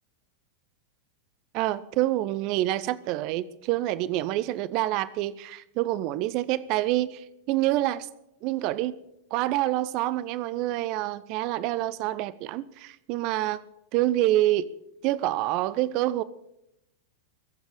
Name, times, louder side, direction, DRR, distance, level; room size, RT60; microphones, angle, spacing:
voice 1, 1.5-8.1 8.4-9.0 9.3-13.6 13.9-14.7 15.0-16.2, right 15 dB, 40° right, 19 dB, 0.5 m, -27 dB
22.0 x 8.0 x 6.6 m, 0.83 s
figure-of-eight pair, 90°, 0 cm